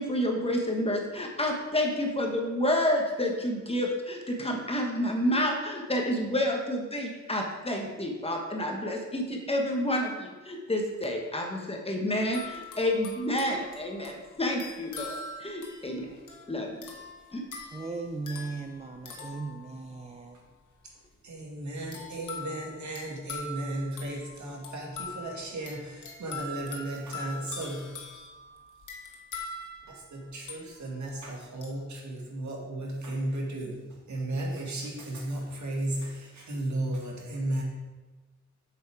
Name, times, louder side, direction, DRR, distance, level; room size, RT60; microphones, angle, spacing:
voice 1, 0.0-16.1 16.5-16.9 17.3-17.4, left 1 dB, 20° left, 1.2 m, -29 dB
sound 1, 12.3-20.2 21.9-31.1 31.6-31.8, left 3 dB, 80° left, 1.5 m, -43 dB
voice 2, 17.7-20.4, right 3 dB, 20° right, 0.4 m, -37 dB
voice 3, 21.2-27.9 29.9-33.8 34.1-37.6, right 1 dB, 70° right, 2.2 m, -35 dB
8.0 x 7.1 x 4.8 m
wide cardioid pair, 160°, 30 cm